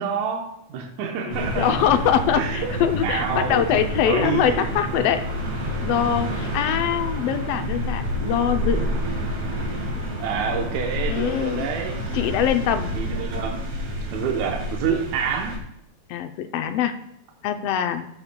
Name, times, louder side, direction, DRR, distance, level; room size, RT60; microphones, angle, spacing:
voice 1, 0.0-1.7 2.4-3.7 4.0-4.7 10.2-12.2 12.9-13.6 14.1-15.6, right 6 dB, 80° right, 2 dB, 2.3 m, -28 dB
voice 2, 1.2-5.2 5.8-8.9 11.1-11.7 12.1-12.9 16.1-16.9 17.4-18.1, left 9 dB, 85° left, 8 dB, 1.3 m, -23 dB
sound 1, 1.3-15.6, equal, 55° right, 2.7 m, -29 dB
14.0 x 6.7 x 2.2 m, 0.79 s
omnidirectional pair, 3.4 m